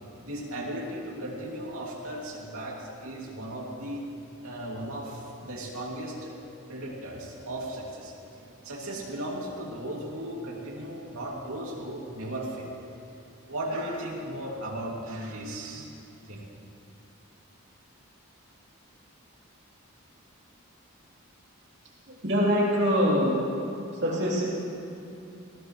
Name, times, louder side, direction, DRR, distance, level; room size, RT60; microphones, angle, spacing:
voice 1, 0.2-4.0 4.4-6.3 6.7-12.7 13.4-15.9 16.2-16.5, right 1 dB, 80° right, -3 dB, 2.7 m, -36 dB
voice 2, 22.2-23.5 24.0-24.4, equal, 50° right, -6 dB, 3.5 m, -23 dB
20.0 x 16.5 x 3.3 m, 2.7 s
head